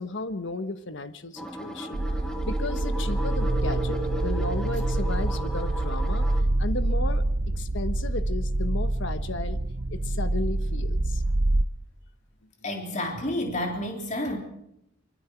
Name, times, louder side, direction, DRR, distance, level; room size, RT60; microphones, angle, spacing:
voice 1, 0.0-2.0 2.4-6.3 6.6-9.6 9.9-11.2, left 2 dB, 65° left, 10 dB, 1.3 m, -34 dB
sound 1, 1.4-6.4, right 1 dB, 5° left, 2.6 m, -35 dB
sound 2, 1.9-11.6, right 1 dB, 50° right, 0.7 m, -26 dB
voice 2, 12.6-14.4, left 1 dB, 35° left, 2 dB, 3.4 m, -30 dB
24.0 x 23.5 x 4.6 m, 0.78 s
head